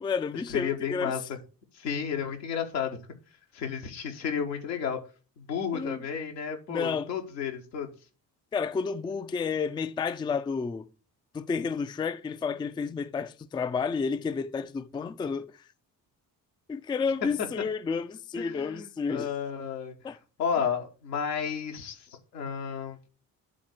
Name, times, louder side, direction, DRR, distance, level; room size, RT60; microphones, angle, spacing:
voice 1, 0.0-1.1 5.7-6.0 6.7-7.1 8.5-10.9 11.3-15.5 16.7-19.3 20.0-20.2, left 5 dB, 10° left, 0.4 m, -31 dB
voice 2, 0.5-1.4 1.7-3.0 3.5-5.0 5.4-7.9 18.4-19.9 20.4-23.0, left 7 dB, 80° left, 1.2 m, -32 dB
7.7 x 4.0 x 6.0 m
figure-of-eight pair, 40°, 49 cm